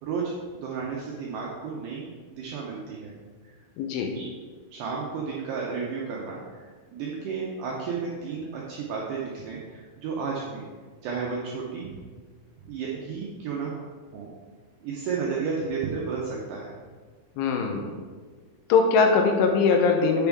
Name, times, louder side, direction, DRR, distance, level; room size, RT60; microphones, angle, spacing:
voice 1, 0.0-3.1 3.4-3.5 4.2-4.3 4.7-10.7 11.0-12.0 12.6-13.8 14.1-14.3 14.8-16.7, right 5 dB, 80° right, -3 dB, 2.3 m, -32 dB
voice 2, 3.8-4.1 17.4-17.9 18.7-20.3, left 5 dB, 80° left, 3 dB, 3.1 m, -21 dB
8.6 x 6.1 x 3.5 m, 1.5 s
omnidirectional pair, 5.8 m